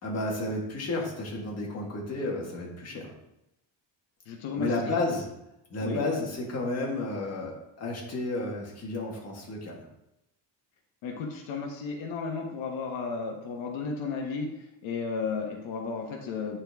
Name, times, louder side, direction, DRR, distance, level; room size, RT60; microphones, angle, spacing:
voice 1, 0.0-3.1 4.6-5.3 5.7-9.9, left 2 dB, 35° left, -2 dB, 1.7 m, -32 dB
voice 2, 4.3-4.7 5.8-6.0 11.0-14.5 14.8-16.6, left 4 dB, 85° left, 2 dB, 1.2 m, -33 dB
9.2 x 4.3 x 3.5 m, 0.86 s
cardioid pair, 165°, 46 cm